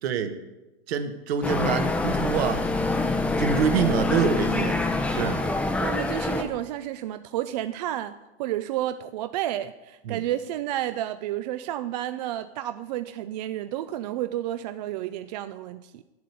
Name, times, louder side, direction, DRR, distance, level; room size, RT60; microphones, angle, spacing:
voice 1, 0.0-0.4 0.9-3.1 3.4-4.8 5.1-5.4 10.0-10.2, right 7 dB, 65° right, 8 dB, 1.4 m, -26 dB
sound 1, 1.4-6.4, left 3 dB, 5° left, 0.7 m, -25 dB
voice 2, 5.8-16.0, right 13 dB, 40° right, 11 dB, 0.4 m, -31 dB
9.3 x 7.8 x 8.2 m, 1.1 s
supercardioid pair, 150°, 33 cm